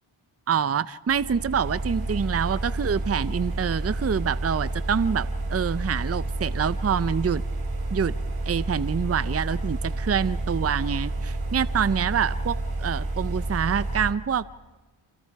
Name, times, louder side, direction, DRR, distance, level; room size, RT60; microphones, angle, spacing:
voice 1, 0.5-7.4 7.9-8.1 8.5-14.6, right 7 dB, 30° right, 15 dB, 0.6 m, -26 dB
sound 1, 1.1-14.1, right 2 dB, 50° right, 3.5 m, -30 dB
27.5 x 27.5 x 4.7 m, 1.2 s
cardioid pair, 70°, 48 cm